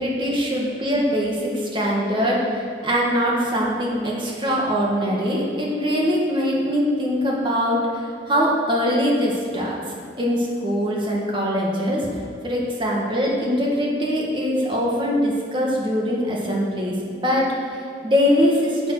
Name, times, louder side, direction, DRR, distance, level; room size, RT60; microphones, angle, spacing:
voice 1, 0.0-9.8 10.2-12.1 12.4-17.0 17.2-18.9, equal, 25° right, -3 dB, 1.8 m, -22 dB
8.9 x 7.6 x 6.2 m, 2.4 s
head